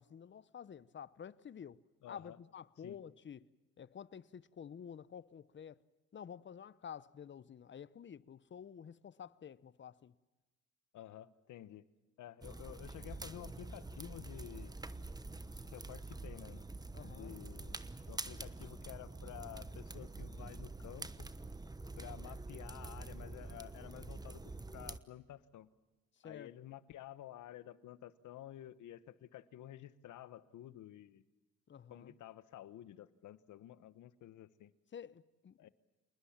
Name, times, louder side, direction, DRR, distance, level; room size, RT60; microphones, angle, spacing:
voice 1, 0.0-1.8 2.1-3.4 3.8-5.8 6.1-10.1 16.9-17.3 26.2-26.5 31.7-32.1 34.9-35.7, left 8 dB, 40° left, 0.8 m, -50 dB
voice 2, 2.0-2.4 2.8-3.0 10.9-11.9 12.2-14.8 15.6-16.7 17.0-17.8 18.1-21.3 22.0-25.7 26.2-31.2 31.9-34.7 35.6-35.7, left 12 dB, 75° left, 1.2 m, -51 dB
sound 1, 12.4-25.0, right 2 dB, 15° right, 1.1 m, -46 dB
28.0 x 20.0 x 7.3 m
cardioid pair, 90°, 30 cm